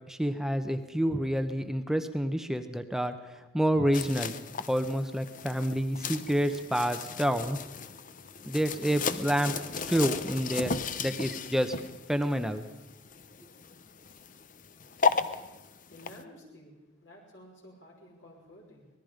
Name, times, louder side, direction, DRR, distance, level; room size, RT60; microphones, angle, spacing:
voice 1, 0.1-3.1 3.5-4.3 4.7-7.6 8.5-9.5 9.9-11.7 12.1-12.6, equal, ahead, 8 dB, 1.0 m, -28 dB
sound 1, 3.9-16.2, left 5 dB, 40° left, 0.8 m, -35 dB
voice 2, 15.9-16.8 17.0-18.8, left 1 dB, 65° left, -1 dB, 5.7 m, -52 dB
25.5 x 20.0 x 5.2 m, 1.1 s
head